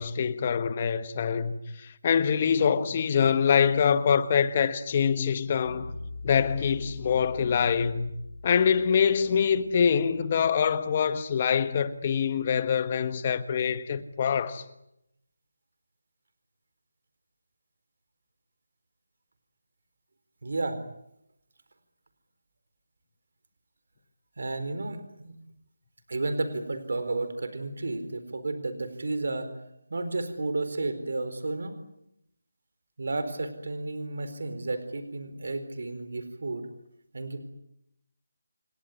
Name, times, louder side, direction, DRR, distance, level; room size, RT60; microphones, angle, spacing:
voice 1, 0.0-5.9 6.2-8.1 8.4-14.6, left 7 dB, 30° left, 1.4 m, -25 dB
sound 1, 5.6-11.6, left 2 dB, 70° left, 7.6 m, -43 dB
voice 2, 20.4-20.8 24.4-25.3 26.1-29.5 29.9-31.7 33.0-36.7 37.1-37.4, right 2 dB, 65° right, 4.3 m, -32 dB
29.0 x 18.5 x 9.6 m
figure-of-eight pair, 170°, 0 cm